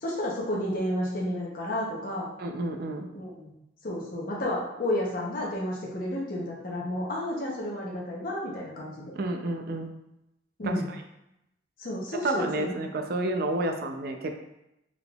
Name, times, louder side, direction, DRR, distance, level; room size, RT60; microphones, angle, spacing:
voice 1, 0.0-2.3 3.1-3.5 3.8-9.1 10.6-10.9 11.8-12.8, left 1 dB, 50° left, -4 dB, 0.7 m, -31 dB
voice 2, 2.4-3.1 9.1-9.9 10.6-10.8 12.2-14.4, right 2 dB, 55° right, 5 dB, 0.4 m, -30 dB
3.7 x 3.6 x 2.3 m, 0.87 s
head